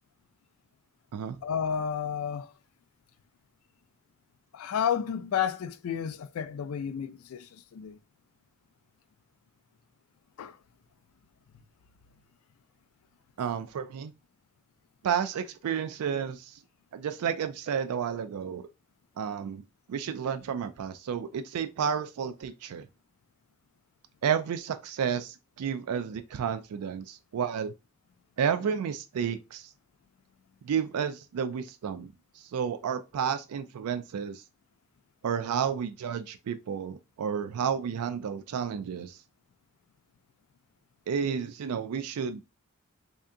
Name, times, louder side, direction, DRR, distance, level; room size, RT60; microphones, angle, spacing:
voice 1, 1.4-2.5 4.5-8.0 10.4-10.6, left 8 dB, 75° left, 0.3 m, -31 dB
voice 2, 13.4-14.1 15.0-16.6 16.9-18.6 19.2-19.6 19.9-22.9 24.2-27.7 28.4-29.7 30.7-34.4 35.2-39.2 41.1-42.4, right 7 dB, 90° right, 0.4 m, -31 dB
3.3 x 2.8 x 3.6 m
head